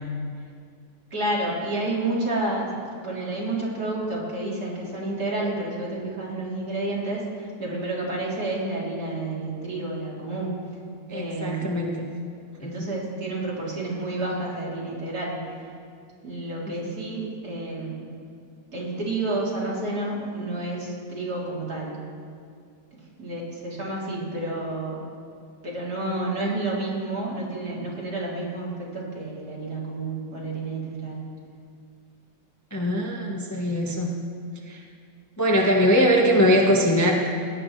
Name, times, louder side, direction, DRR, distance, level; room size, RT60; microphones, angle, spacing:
voice 1, 1.1-2.7 3.0-10.5 11.1-11.7 12.6-15.3 16.2-18.1 18.7-22.0 23.2-25.0 25.6-31.3, right 2 dB, 55° right, -5 dB, 4.0 m, -30 dB
voice 2, 11.1-12.1 12.6-12.9 16.8-16.9 32.7-34.1 34.7-34.8 35.4-37.1, equal, 10° left, -1 dB, 1.2 m, -22 dB
21.0 x 18.0 x 3.3 m, 2.3 s
omnidirectional pair, 2.0 m